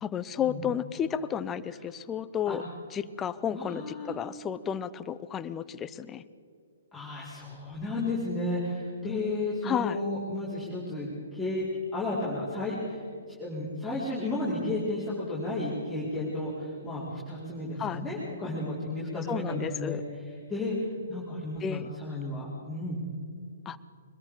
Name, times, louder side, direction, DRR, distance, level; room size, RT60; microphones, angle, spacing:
voice 1, 0.0-2.6 2.9-6.2 9.6-10.0 17.8-18.0 19.3-20.0 21.6-21.9 23.7-23.8, left 8 dB, 15° left, 15 dB, 0.7 m, -32 dB
voice 2, 3.5-4.1 6.9-11.6 11.9-20.0 20.5-23.0, left 2 dB, ahead, -11 dB, 4.7 m, -33 dB
24.0 x 21.5 x 5.1 m, 2.4 s
figure-of-eight pair, 125°, 0 cm